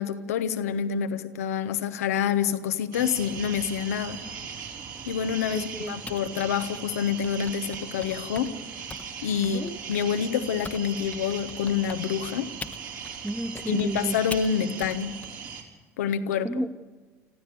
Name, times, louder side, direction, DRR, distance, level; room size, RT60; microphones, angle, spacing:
voice 1, 0.0-4.2 5.1-8.5 9.2-12.5 13.7-15.2 16.0-16.7, left 8 dB, 75° left, 10 dB, 1.0 m, -27 dB
sound 1, 2.9-15.6, right 6 dB, 55° right, 3.7 m, -39 dB
voice 2, 5.5-6.0 9.4-9.8 13.2-14.2 16.4-16.8, right 1 dB, 5° right, 10 dB, 0.7 m, -31 dB
Typing, 6.1-10.8 11.1-15.3, left 3 dB, 15° left, 1.1 m, -42 dB
26.0 x 15.0 x 6.8 m, 1.3 s
figure-of-eight pair, 60°, 8 cm